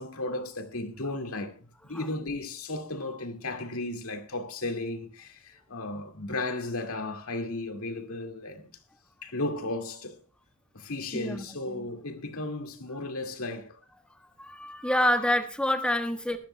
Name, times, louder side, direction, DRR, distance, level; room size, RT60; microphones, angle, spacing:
voice 1, 0.0-8.7 9.2-10.2 10.7-13.8, left 2 dB, 75° left, 2.0 m, -35 dB
voice 2, 11.1-11.9 14.4-16.4, left 1 dB, 5° left, 1.3 m, -27 dB
21.5 x 13.5 x 2.2 m
head